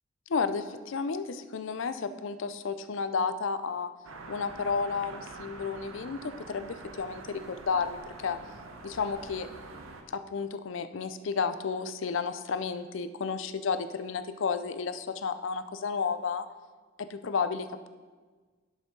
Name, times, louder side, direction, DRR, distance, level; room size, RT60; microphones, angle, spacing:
voice 1, 0.3-3.9 4.3-8.4 8.8-9.5 10.1-16.5 17.0-17.9, left 5 dB, 70° left, 11 dB, 0.5 m, -32 dB
sound 1, 4.0-10.0, right 3 dB, 90° right, 0.9 m, -46 dB
11.0 x 6.2 x 3.8 m, 1.4 s
head